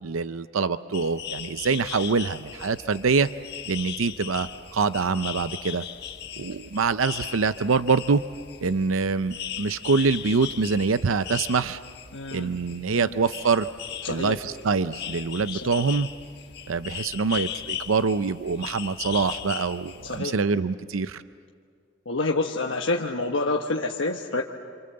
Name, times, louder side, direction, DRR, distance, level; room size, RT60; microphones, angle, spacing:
voice 1, 0.0-3.3 3.7-5.8 6.4-8.2 8.6-11.8 12.3-13.7 14.1-16.1 16.7-21.2, right 4 dB, 90° right, 12 dB, 0.6 m, -25 dB
sound 1, 0.9-20.2, left 9 dB, 50° left, 1.5 m, -38 dB
voice 2, 12.1-12.5 12.9-13.1 14.0-14.4 15.5-15.6 20.1-20.3 22.1-24.4, left 3 dB, 75° left, 0 dB, 1.3 m, -27 dB
28.0 x 27.0 x 7.8 m, 2.2 s
head